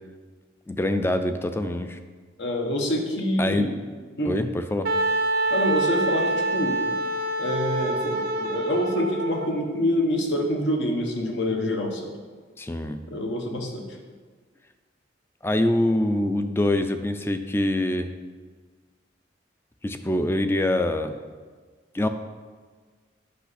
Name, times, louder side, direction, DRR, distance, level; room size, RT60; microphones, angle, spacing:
voice 1, 0.7-2.0 3.4-3.7 4.3-4.9 12.6-13.0 15.4-18.1 19.8-21.2 21.9-22.1, left 1 dB, 15° left, 9 dB, 0.3 m, -24 dB
voice 2, 2.4-3.7 4.2-4.4 5.5-6.8 7.4-12.0 13.1-13.9, left 1 dB, 75° left, 2 dB, 1.1 m, -26 dB
Wind instrument woodwind instrument, 4.8-9.5, right 2 dB, 55° right, 0.4 m, -26 dB
8.3 x 5.8 x 4.1 m, 1.5 s
head